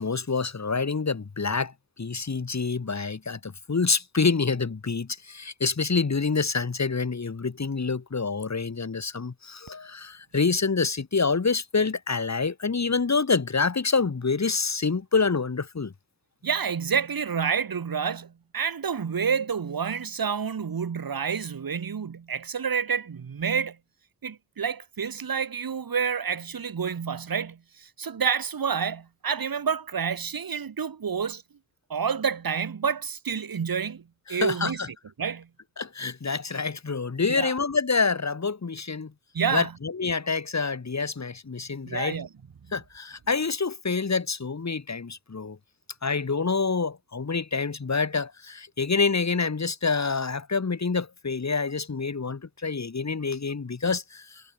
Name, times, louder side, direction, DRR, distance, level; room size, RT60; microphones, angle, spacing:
voice 1, 0.0-1.7 2.0-15.9 34.3-34.9 35.8-39.1 39.5-42.2 42.7-45.6 46.0-54.4, left 4 dB, 50° left, 5.2 m, -27 dB
voice 2, 16.4-23.8 24.2-31.4 31.9-34.0 34.3-34.8 35.2-35.5 37.3-37.6 39.3-39.7 41.8-42.3, right 6 dB, 75° right, 5.2 m, -29 dB
cardioid pair, 70°, 36 cm